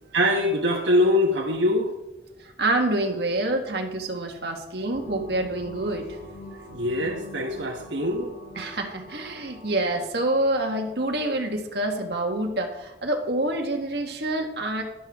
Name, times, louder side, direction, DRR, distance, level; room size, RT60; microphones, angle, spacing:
voice 1, 0.1-1.9 6.7-8.3, left 1 dB, 80° right, 0 dB, 1.4 m, -23 dB
voice 2, 2.4-6.1 8.5-14.8, right 1 dB, 60° right, 2 dB, 1.6 m, -27 dB
sound 1, 4.9-10.0, left 1 dB, 60° left, 2.6 m, -43 dB
12.5 x 11.5 x 3.7 m, 0.99 s
head